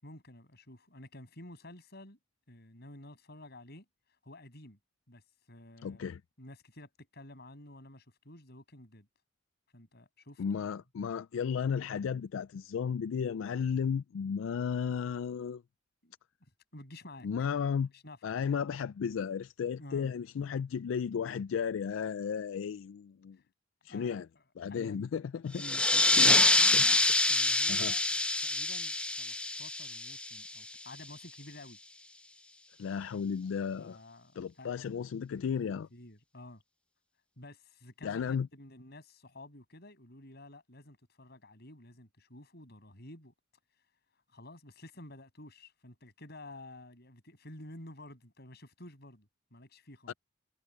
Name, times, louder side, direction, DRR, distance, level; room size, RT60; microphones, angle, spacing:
voice 1, 0.0-2.2 2.5-4.8 5.1-5.2 5.5-9.1 9.7-10.8 16.0-16.1 16.7-17.3 17.9-18.4 19.7-20.1 23.9-24.4 24.7-25.2 25.5-31.8 33.7-34.7 35.4-35.5 35.9-36.6 37.4-43.3 44.3-50.2, left 1 dB, 55° left, 6.9 m, -51 dB
voice 2, 5.8-6.2 10.4-15.6 17.2-17.9 18.2-23.4 23.8-24.3 24.6-25.5 26.2-26.8 27.7-27.9 32.8-34.0 34.4-35.9 38.0-38.5 50.1-50.2, left 7 dB, 90° left, 0.4 m, -34 dB
sound 1, 25.6-30.8, left 2 dB, 5° left, 0.4 m, -26 dB
head